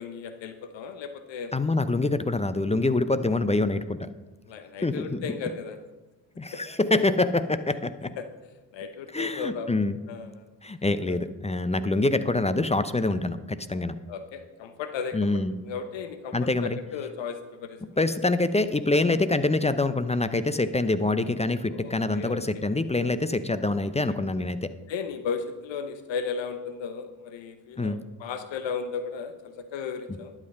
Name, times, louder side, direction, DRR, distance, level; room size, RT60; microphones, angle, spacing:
voice 1, 0.0-1.5 4.5-5.8 8.2-8.3 8.7-9.7 10.1-10.3 11.1-11.2 14.1-15.2 15.6-17.8 21.7-22.4 24.9-30.3, left 6 dB, 60° left, 9 dB, 1.0 m, -35 dB
voice 2, 1.5-4.1 4.8-5.4 6.4-8.1 9.1-10.0 10.6-14.0 15.1-15.5 16.3-16.8 18.0-24.7 27.8-28.0 30.1-30.2, left 2 dB, 15° left, 12 dB, 0.7 m, -25 dB
11.5 x 7.5 x 5.4 m, 1.1 s
hypercardioid pair, 45°, 50 cm